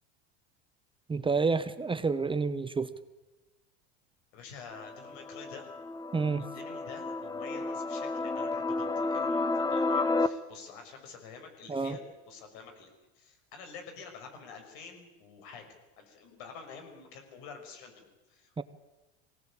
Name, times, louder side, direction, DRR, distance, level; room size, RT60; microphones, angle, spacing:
voice 1, 1.1-2.9 6.1-6.4 11.7-12.0 18.6-18.7, right 4 dB, 15° right, 12 dB, 0.9 m, -29 dB
voice 2, 4.3-5.7 6.4-12.0 12.3-18.6, left 5 dB, 70° left, 5 dB, 6.0 m, -48 dB
sound 1, 4.7-10.3, left 3 dB, 10° left, 1.0 m, -31 dB
22.0 x 17.5 x 8.7 m, 1.1 s
supercardioid pair, 105°, 32 cm